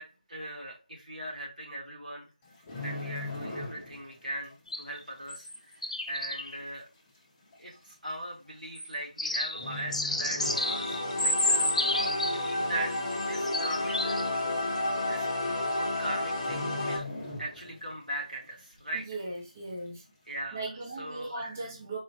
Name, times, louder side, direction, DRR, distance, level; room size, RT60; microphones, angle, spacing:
voice 1, 0.0-2.3 2.8-5.8 6.1-6.9 7.6-14.2 15.0-15.3 15.7-17.1 17.4-19.1 20.3-20.6 21.0-21.7, right 1 dB, 80° right, -2 dB, 2.1 m, -39 dB
sound 1, 2.4-4.2 4.4-4.7 5.3-5.4 6.3-6.4 6.6-6.7 7.5-7.7 8.8-9.2 9.5-11.1 11.4-11.7 12.1-12.7 13.0-13.1 13.3-13.4 13.9-14.0 14.9-15.0 15.3-15.6 15.9-16.0 16.4-18.0 18.4-18.5, left 2 dB, 10° left, 0.5 m, -40 dB
sound 2, 4.7-5.6 5.8-6.6 8.8-8.9 9.2-12.6 12.9-14.4 14.8-14.9, left 2 dB, 55° left, 0.7 m, -31 dB
sound 3, 10.4-17.0, left 1 dB, 25° left, 0.9 m, -31 dB
voice 2, 19.1-20.0 20.5-22.0, right 2 dB, 20° right, -2 dB, 0.7 m, -38 dB
4.2 x 2.4 x 3.0 m, 0.31 s
figure-of-eight pair, 165°, 4 cm